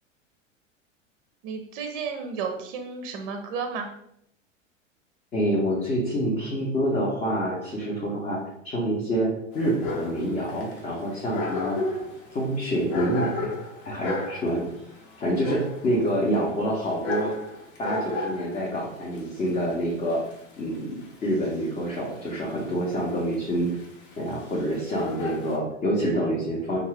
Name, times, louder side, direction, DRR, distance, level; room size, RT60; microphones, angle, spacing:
voice 1, 1.4-3.9, right 5 dB, 45° right, 5 dB, 0.5 m, -32 dB
voice 2, 5.3-8.4 8.6-9.3 9.5-12.0 12.3-13.5 13.8-14.6 15.2-17.3 17.8-20.2 20.6-23.7 24.2-26.8, equal, 20° left, -3 dB, 0.6 m, -27 dB
Dog, 9.5-25.6, left 2 dB, 55° left, 0.9 m, -35 dB
2.6 x 2.4 x 3.2 m, 0.75 s
figure-of-eight pair, 90°, 39 cm